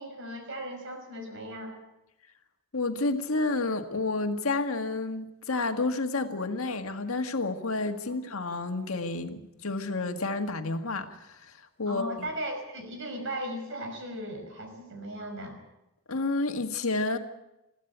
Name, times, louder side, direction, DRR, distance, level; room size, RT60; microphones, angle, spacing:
voice 1, 0.0-1.7 8.1-8.2 11.9-15.6, right 1 dB, 60° right, 5 dB, 5.6 m, -37 dB
voice 2, 2.7-12.3 16.1-17.2, left 3 dB, 80° left, 6 dB, 1.8 m, -30 dB
21.0 x 15.0 x 8.1 m, 0.94 s
head